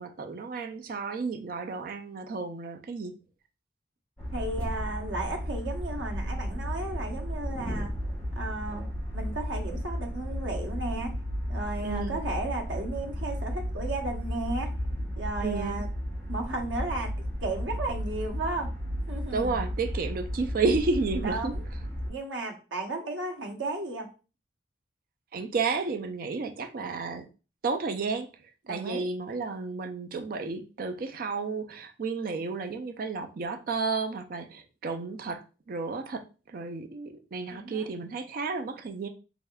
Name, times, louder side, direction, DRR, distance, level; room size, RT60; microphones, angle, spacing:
voice 1, 0.0-3.1 11.8-12.2 15.4-15.9 19.3-21.5 25.3-27.3 27.6-28.3 28.7-35.4 35.7-39.1, right 4 dB, 50° right, 0.4 m, -32 dB
sound 1, 4.2-22.1, equal, 10° left, 1.2 m, -34 dB
voice 2, 4.3-7.9 8.4-8.8 9.1-11.2 11.5-14.7 15.2-15.9 16.3-17.1 17.4-18.7 19.1-19.6 21.2-21.6 22.1-24.1 28.7-29.0 37.5-37.9, right 2 dB, 80° right, 0.9 m, -34 dB
3.5 x 3.4 x 2.3 m
head